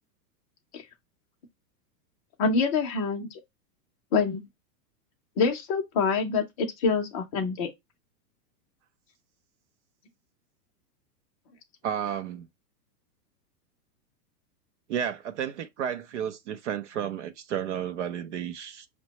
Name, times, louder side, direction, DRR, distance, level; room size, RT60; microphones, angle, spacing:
voice 1, 2.4-3.4 4.1-4.4 5.4-7.7, left 4 dB, 20° left, 0.5 m, -26 dB
voice 2, 11.8-12.5 14.9-18.9, right 9 dB, 50° right, 0.5 m, -32 dB
5.5 x 2.2 x 2.7 m
supercardioid pair, 165°, 48 cm